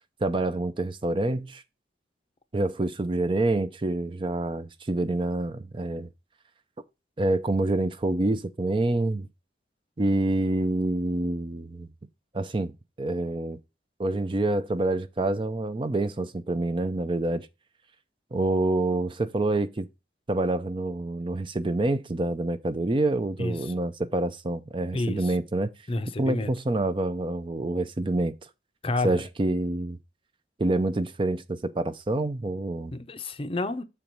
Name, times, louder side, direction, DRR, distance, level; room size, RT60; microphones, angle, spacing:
voice 1, 0.2-1.6 2.5-6.1 7.2-9.3 10.0-11.9 12.3-13.6 14.0-17.5 18.3-19.9 20.3-25.7 26.2-28.3 29.0-30.0 30.6-32.9, right 2 dB, 30° right, 0.5 m, -27 dB
voice 2, 23.4-23.7 24.9-25.3 25.9-26.5 28.8-29.2 32.9-33.8, left 2 dB, 30° left, 0.6 m, -30 dB
7.1 x 4.5 x 5.2 m
head